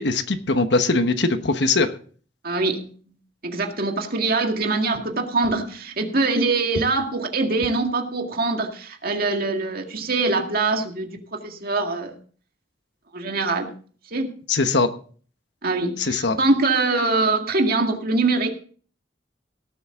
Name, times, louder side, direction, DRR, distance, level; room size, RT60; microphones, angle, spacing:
voice 1, 0.0-1.9 14.5-14.9 16.0-16.4, left 3 dB, 70° left, 9 dB, 1.1 m, -21 dB
voice 2, 2.4-2.9 3.4-12.2 13.1-13.7 14.1-14.3 15.6-18.5, right 3 dB, 55° right, 3 dB, 2.0 m, -23 dB
18.0 x 7.9 x 3.7 m, 0.43 s
head